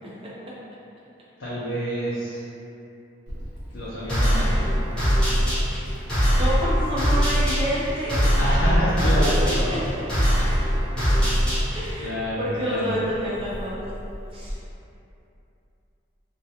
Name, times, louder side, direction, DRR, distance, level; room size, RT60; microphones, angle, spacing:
voice 1, 1.4-2.4 3.7-4.6 8.3-9.9 11.1-13.0, equal, 80° left, -10 dB, 0.5 m, -28 dB
Meow, 3.3-14.6, equal, 75° right, 0.8 m, -33 dB
sound 1, 4.1-12.0, equal, 5° left, 0.8 m, -22 dB
voice 2, 6.3-8.3 9.2-9.3 9.7-9.8 11.7-12.1 12.4-13.8 14.3-14.6, equal, 30° right, -7 dB, 0.4 m, -28 dB
2.3 x 2.1 x 2.7 m, 2.8 s
head